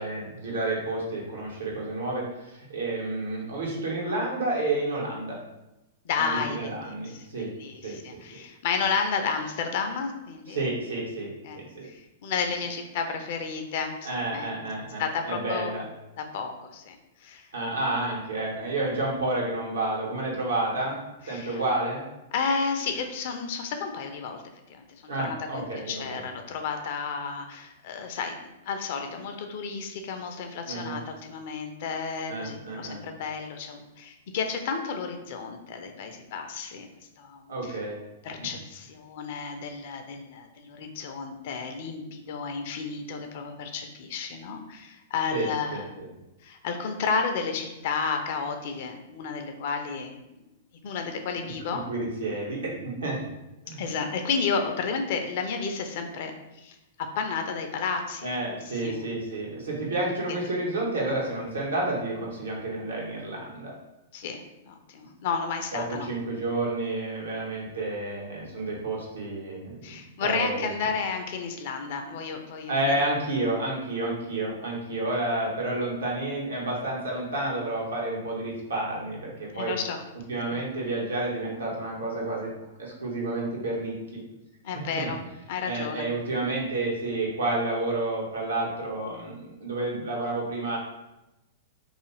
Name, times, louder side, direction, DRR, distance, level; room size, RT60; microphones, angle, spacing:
voice 1, 0.0-5.4 6.2-7.5 7.8-8.2 10.5-11.9 14.0-15.8 17.5-21.0 21.3-22.0 25.1-26.2 30.7-31.0 32.3-33.0 37.5-38.0 38.4-38.5 45.3-46.1 51.7-53.2 53.6-53.8 58.2-63.7 65.7-69.8 70.2-70.7 72.7-79.7 80.3-82.5 82.8-84.2 84.9-85.1 85.6-90.8, right 2 dB, 80° right, -3 dB, 0.9 m, -30 dB
voice 2, 6.0-6.8 7.1-10.7 11.4-14.5 15.0-15.7 16.2-17.5 21.3-21.6 22.3-24.4 24.7-36.9 37.2-37.8 38.2-45.8 46.4-50.4 50.8-51.9 53.7-58.3 58.7-59.0 60.2-60.4 64.1-66.1 69.8-72.9 79.5-80.0 80.5-80.6 84.6-85.2 85.5-86.1, left 5 dB, 55° left, 5 dB, 0.4 m, -32 dB
2.5 x 2.4 x 3.0 m, 0.95 s
figure-of-eight pair, 105°, 0 cm